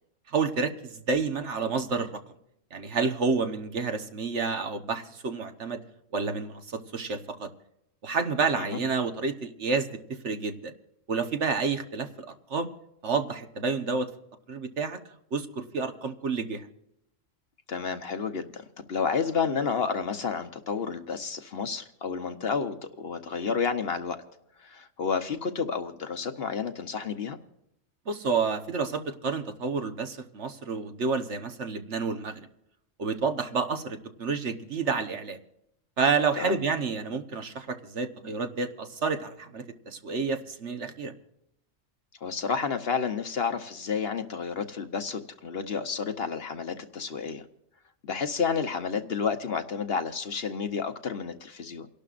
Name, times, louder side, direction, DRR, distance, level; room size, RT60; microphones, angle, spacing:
voice 1, 0.3-2.2 2.7-5.8 6.1-7.5 8.0-10.7 11.1-12.7 13.0-14.1 14.5-15.0 15.3-16.7 28.1-32.4 33.0-35.4 36.0-41.1, right 4 dB, 60° right, 7 dB, 1.5 m, -29 dB
voice 2, 17.7-24.2 24.6-27.4 36.4-36.6 42.2-47.4 48.0-51.9, left 5 dB, 50° left, 9 dB, 1.1 m, -30 dB
29.5 x 12.0 x 2.5 m, 0.79 s
omnidirectional pair, 1.4 m